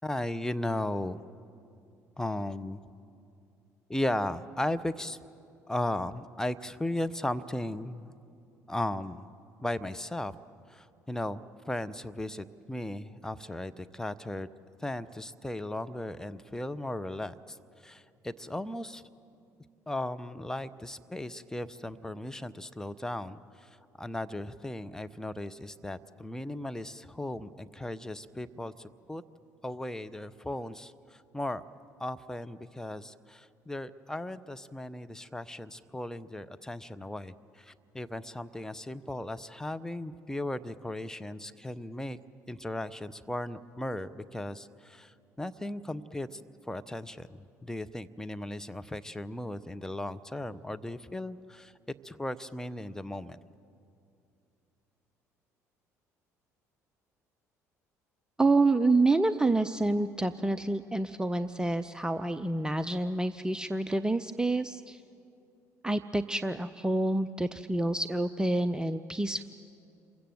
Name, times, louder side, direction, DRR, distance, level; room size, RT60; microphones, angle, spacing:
voice 1, 0.0-1.2 2.2-2.8 3.9-5.2 5.7-8.1 8.7-9.3 9.6-10.3 10.7-14.5 14.8-17.6 17.8-19.0 19.9-23.7 24.0-29.2 29.6-31.6 32.0-42.2 42.5-46.4 46.7-51.7 52.0-53.4, left 1 dB, 5° left, 10 dB, 1.0 m, -36 dB
voice 2, 58.4-65.0 65.8-69.5, right 2 dB, 10° right, 12 dB, 0.7 m, -28 dB
28.0 x 23.5 x 7.9 m, 2.6 s
figure-of-eight pair, 55°, 8 cm